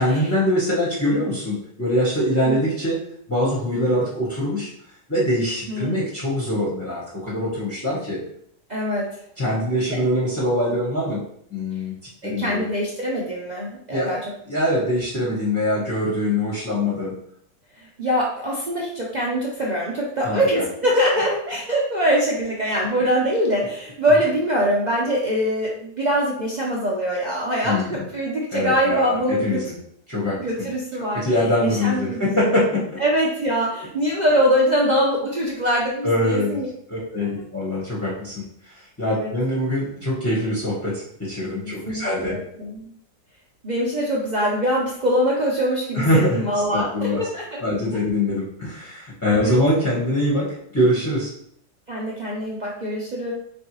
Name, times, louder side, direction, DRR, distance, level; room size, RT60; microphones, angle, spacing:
voice 1, 0.0-3.0 3.3-4.7 5.1-8.2 9.4-11.2 11.5-11.9 12.2-12.6 13.9-14.2 14.4-17.1 20.2-20.4 27.6-28.0 28.5-29.7 30.1-30.7 31.1-32.8 36.0-36.6 36.9-42.4 45.9-46.4 46.7-47.2 47.6-51.3, left 1 dB, 10° left, -8 dB, 0.7 m, -23 dB
voice 2, 5.7-6.0 8.7-9.1 12.2-14.2 17.8-29.6 30.4-31.2 31.6-32.4 33.0-36.7 39.1-39.3 41.6-42.9 43.6-47.6 49.3-49.6 51.9-53.3, equal, 70° right, -4 dB, 0.4 m, -23 dB
4.2 x 3.4 x 3.0 m, 0.69 s
omnidirectional pair, 1.8 m